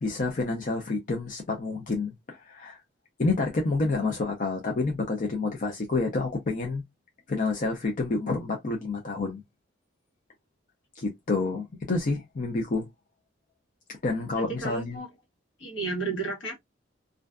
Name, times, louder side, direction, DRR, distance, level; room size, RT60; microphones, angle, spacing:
voice 1, 0.0-2.8 3.2-6.8 7.3-9.4 11.0-12.9 14.0-15.0, left 3 dB, 40° left, 0.5 m, -28 dB
voice 2, 14.4-15.1 15.6-16.6, right 3 dB, 75° left, 1.2 m, -32 dB
2.5 x 2.2 x 2.3 m
head